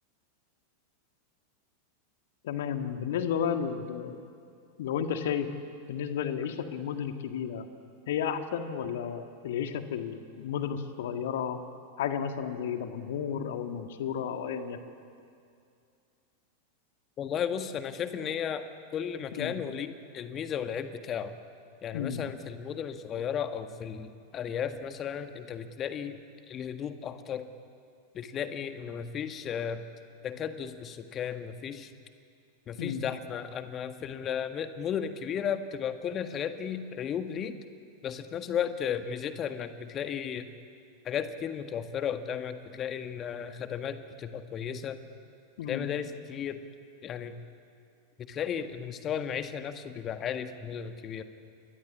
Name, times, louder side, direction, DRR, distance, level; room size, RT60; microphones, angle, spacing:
voice 1, 2.4-4.2 4.8-5.5 5.9-7.7 8.1-11.6 12.0-14.8 19.3-19.5 21.9-22.3 32.8-33.1 45.6-45.9, left 8 dB, 55° left, 7 dB, 1.8 m, -32 dB
voice 2, 17.2-18.6 18.9-21.3 21.8-26.2 26.5-27.5 28.1-29.8 30.2-31.9 32.7-37.6 38.0-40.5 41.0-45.0 45.7-46.6 47.0-47.3 48.3-51.2, left 8 dB, 30° left, 9 dB, 1.7 m, -34 dB
29.0 x 22.5 x 8.6 m, 2.4 s
figure-of-eight pair, 90°, 0 cm